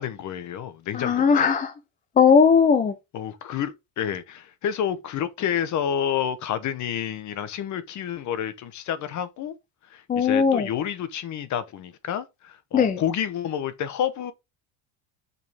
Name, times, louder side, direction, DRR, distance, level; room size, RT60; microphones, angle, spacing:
voice 1, 0.0-1.5 3.1-9.5 9.9-14.3, left 9 dB, 40° left, 1.0 m, -29 dB
voice 2, 0.9-1.7 2.2-2.9 10.1-10.7 12.7-13.0, left 6 dB, 20° left, 0.5 m, -18 dB
6.8 x 5.5 x 3.5 m
cardioid pair, 160°, 44 cm